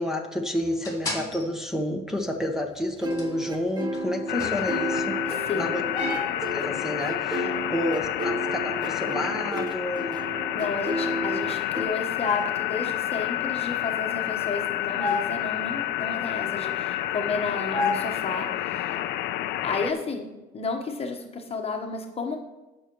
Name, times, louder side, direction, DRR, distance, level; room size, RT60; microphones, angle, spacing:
voice 1, 0.0-5.2 5.5-5.8 6.5-10.2, left 1 dB, 5° right, 4 dB, 1.2 m, -30 dB
sound 1, 0.6-1.5 2.8-2.9 3.1-3.3 3.8-4.0 4.4-5.0 5.6-6.8 8.0-8.3 9.3-9.9 12.2-12.6 15.0-15.5 16.4-16.7 17.7-18.5, left 3 dB, 20° left, 2.5 m, -32 dB
sound 2, 3.0-11.8, right 1 dB, 25° right, 1.3 m, -32 dB
sound 3, 4.3-19.9, left 13 dB, 80° left, 0.6 m, -29 dB
voice 2, 5.3-5.7 7.4-7.6 10.5-19.0 19.6-20.3 20.5-22.4, left 4 dB, 35° left, 3 dB, 1.2 m, -32 dB
19.0 x 6.3 x 3.1 m, 1.1 s
cardioid pair, 110°, 17 cm